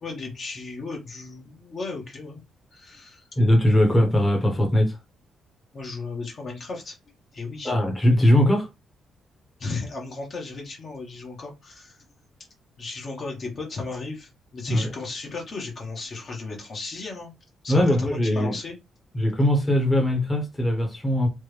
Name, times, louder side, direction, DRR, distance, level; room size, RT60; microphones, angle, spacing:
voice 1, 0.0-2.4 2.7-3.3 3.8-3.9 5.7-7.0 7.3-7.7 9.6-12.0 12.8-17.3 17.6-18.8, left 3 dB, 50° left, 1.1 m, -35 dB
voice 2, 3.4-5.0 7.6-8.7 14.7-14.9 17.7-18.6 19.1-21.3, left 1 dB, 20° left, 1.0 m, -20 dB
3.3 x 2.1 x 3.2 m
cardioid pair, 85°, 0 cm